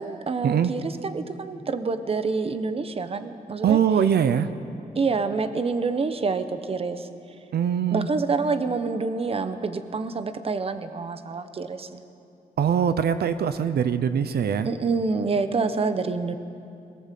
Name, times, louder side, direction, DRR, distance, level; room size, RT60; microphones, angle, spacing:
voice 1, 0.0-3.8 4.9-7.1 7.9-12.0 14.6-16.4, right 4 dB, 35° right, 10 dB, 1.0 m, -27 dB
voice 2, 3.6-4.5 7.5-8.1 12.6-14.7, right 8 dB, 90° right, 11 dB, 0.8 m, -22 dB
22.0 x 18.5 x 7.6 m, 2.6 s
wide cardioid pair, 145°, 16 cm